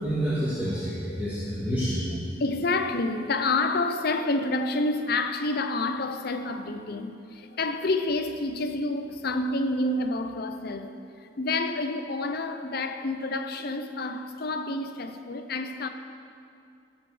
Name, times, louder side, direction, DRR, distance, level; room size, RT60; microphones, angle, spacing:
voice 1, 0.0-2.0, equal, 10° right, 2.1 m, -28 dB
voice 2, 1.0-1.5 2.4-15.9, left 2 dB, 55° left, 0.6 m, -29 dB
16.0 x 7.4 x 5.0 m
head